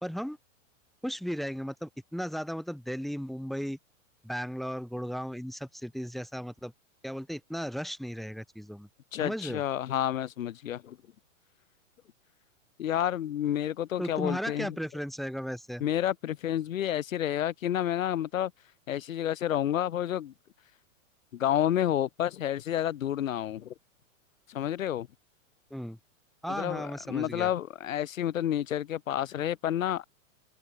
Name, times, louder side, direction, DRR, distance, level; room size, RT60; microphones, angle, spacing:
voice 1, 0.0-0.4 1.0-3.8 4.2-6.7 7.0-8.9 9.2-9.6 14.0-15.8 25.7-26.0 26.4-27.5, equal, ahead, 3.3 m, -35 dB
voice 2, 9.1-11.0 12.8-14.7 15.8-18.5 18.9-20.3 21.3-23.7 24.5-25.1 26.5-30.1, left 11 dB, 75° left, 3.4 m, -30 dB
supercardioid pair, 165°, 40 cm